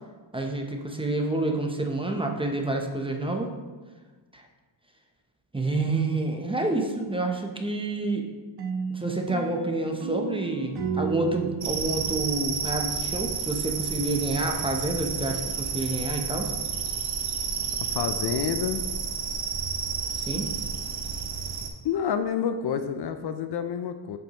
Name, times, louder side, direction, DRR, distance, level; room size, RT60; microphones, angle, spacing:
voice 1, 0.3-3.5 4.3-4.5 5.5-8.3 8.9-16.5 20.2-20.5, right 2 dB, 10° right, 2 dB, 0.7 m, -28 dB
sound 1, 8.6-13.5, right 7 dB, 55° right, 0.9 m, -34 dB
sound 2, 11.6-21.7, right 6 dB, 80° right, 0.9 m, -31 dB
voice 2, 17.9-18.8 21.8-24.2, left 8 dB, 55° left, 9 dB, 0.5 m, -28 dB
7.7 x 5.3 x 2.9 m, 1.3 s
cardioid pair, 95°, 47 cm